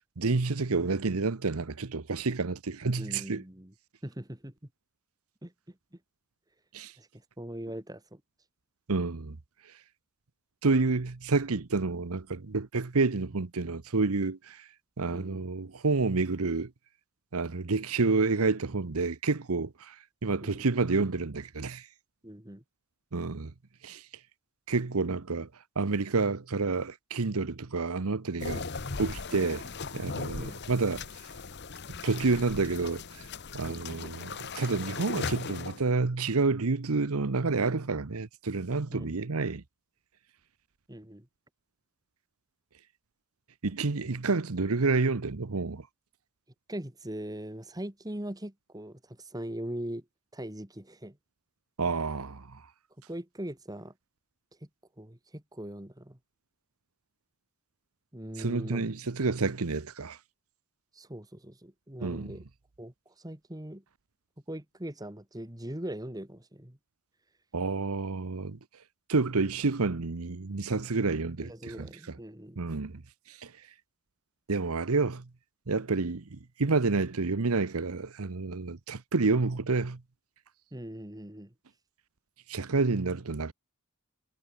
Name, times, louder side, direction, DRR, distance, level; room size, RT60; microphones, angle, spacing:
voice 1, 0.2-3.4 6.7-6.9 8.9-9.4 10.6-14.7 15.0-16.7 17.3-21.9 23.1-23.5 23.8-24.0 24.7-25.5 25.8-28.6 29.0-29.6 29.9-31.1 32.0-33.3 33.5-39.6 43.6-45.9 51.8-52.6 58.4-60.2 62.0-62.3 67.5-68.6 69.1-71.9 72.6-73.0 73.3-73.5 74.5-75.2 75.7-80.0 82.5-83.5, right 3 dB, 80° right, 1.0 m, -29 dB
voice 2, 3.0-3.7 4.0-4.5 5.4-6.0 7.0-8.2 15.1-15.4 20.4-20.7 22.2-22.6 28.5-28.7 30.4-30.6 33.6-33.8 38.9-39.2 40.9-41.3 46.7-50.1 50.3-51.2 53.1-53.9 54.6-54.7 55.0-56.2 58.1-58.9 60.9-62.4 62.8-63.8 64.5-66.8 71.4-72.6 80.7-81.5, right 1 dB, 15° right, 1.8 m, -41 dB
sound 1, 28.4-35.8, left 4 dB, 50° left, 1.1 m, -38 dB
head